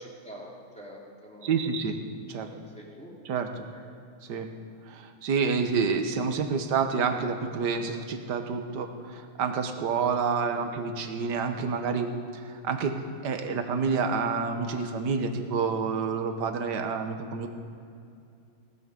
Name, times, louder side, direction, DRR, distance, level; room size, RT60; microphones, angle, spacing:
voice 1, 0.0-1.6 2.3-3.1 3.7-3.8 10.5-10.7 13.5-13.6 16.9-17.0, equal, 5° left, -3 dB, 2.6 m, -46 dB
voice 2, 1.4-2.0 2.3-2.5 3.3-3.7 4.3-4.5 4.9-12.1 12.4-12.9 13.2-17.5, right 5 dB, 60° right, 6 dB, 1.7 m, -28 dB
18.0 x 13.0 x 5.3 m, 2.5 s
omnidirectional pair, 2.3 m